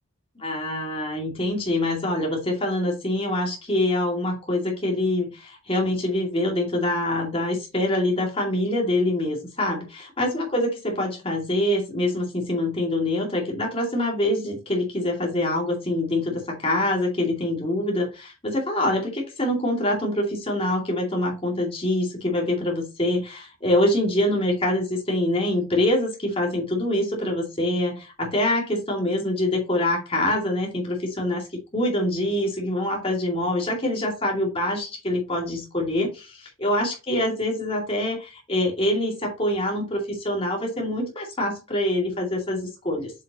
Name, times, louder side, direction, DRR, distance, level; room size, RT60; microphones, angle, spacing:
voice 1, 0.4-31.5 31.7-43.1, left 1 dB, 25° left, 0 dB, 2.4 m, -25 dB
7.1 x 5.6 x 3.0 m, 0.27 s
head